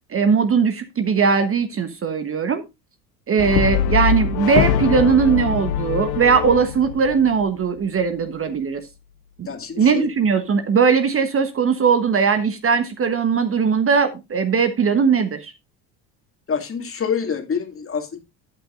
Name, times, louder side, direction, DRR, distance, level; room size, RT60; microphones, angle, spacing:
voice 1, 0.1-2.6 3.3-8.8 9.4-9.5 9.8-15.5, right 6 dB, 25° right, 1.2 m, -19 dB
Brass instrument, 3.4-7.7, left 9 dB, 50° left, 1.2 m, -23 dB
voice 2, 9.4-10.1 16.5-18.2, left 6 dB, 25° left, 2.3 m, -26 dB
13.5 x 8.9 x 2.5 m
figure-of-eight pair, 70°, 49 cm